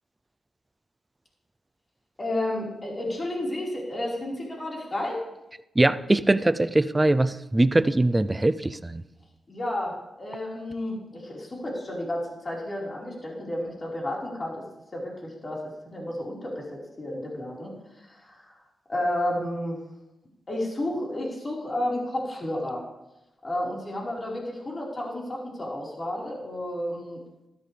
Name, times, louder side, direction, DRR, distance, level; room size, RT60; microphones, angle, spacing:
voice 1, 2.2-5.2 9.5-14.6 14.9-18.5 18.9-19.8 20.5-22.8 23.4-27.2, left 1 dB, 35° left, -4 dB, 4.7 m, -32 dB
voice 2, 5.8-9.0, right 2 dB, 20° right, 14 dB, 0.6 m, -22 dB
13.5 x 13.0 x 3.4 m, 0.93 s
cardioid pair, 65°, 0 cm